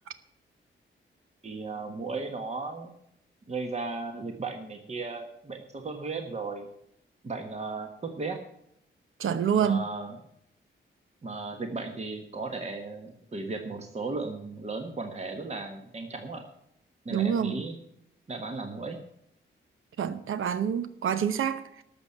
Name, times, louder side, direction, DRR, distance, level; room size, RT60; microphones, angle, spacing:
voice 1, 1.4-2.9 3.5-6.7 7.2-8.5 9.5-10.2 11.2-16.4 17.0-17.8 18.3-19.0, right 3 dB, 30° right, 1.4 m, -35 dB
voice 2, 9.2-9.8 17.1-17.5 20.0-21.6, right 8 dB, 85° right, 0.9 m, -27 dB
12.5 x 7.1 x 8.6 m
wide cardioid pair, 150°, 21 cm